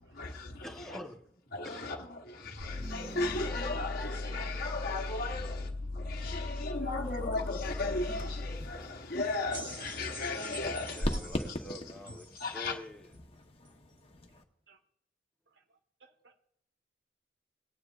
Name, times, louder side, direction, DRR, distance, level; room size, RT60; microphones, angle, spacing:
voice 1, 0.2-1.2 1.6-1.9 6.1-6.9 10.6-13.1, left 1 dB, ahead, 1.0 m, -48 dB
voice 2, 1.5-2.0 2.6-5.6 6.1-11.2 12.4-12.7, left 3 dB, 55° left, 1.1 m, -35 dB
sound 1, 2.6-8.8, left 2 dB, 50° right, 1.3 m, -38 dB
sound 2, 6.7-14.4, left 1 dB, 30° left, 1.0 m, -41 dB
sound 3, 9.5-12.8 13.7-13.8, right 2 dB, 25° right, 1.2 m, -47 dB
voice 3, 16.0-16.5, right 5 dB, 65° right, 1.1 m, -64 dB
19.0 x 9.6 x 2.4 m
head